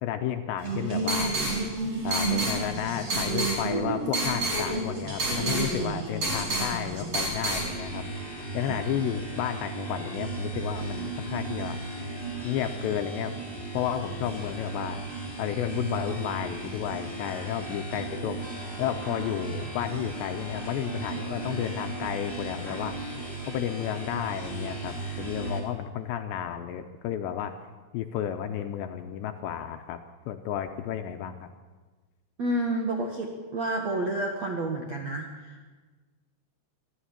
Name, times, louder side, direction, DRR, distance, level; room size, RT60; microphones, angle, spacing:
voice 1, 0.0-1.3 2.0-8.0 8.5-11.8 12.4-13.4 13.7-15.0 15.4-18.4 18.8-23.1 23.5-27.5 27.9-30.0 30.3-31.5, left 10 dB, 85° left, 6 dB, 2.6 m, -32 dB
sound 1, 0.6-7.7, right 2 dB, 30° right, 5.3 m, -29 dB
sound 2, 7.4-25.6, right 3 dB, 15° right, 3.3 m, -36 dB
voice 2, 32.4-35.7, right 1 dB, 70° right, 2 dB, 1.6 m, -30 dB
24.5 x 14.0 x 8.8 m, 1.3 s
omnidirectional pair, 6.0 m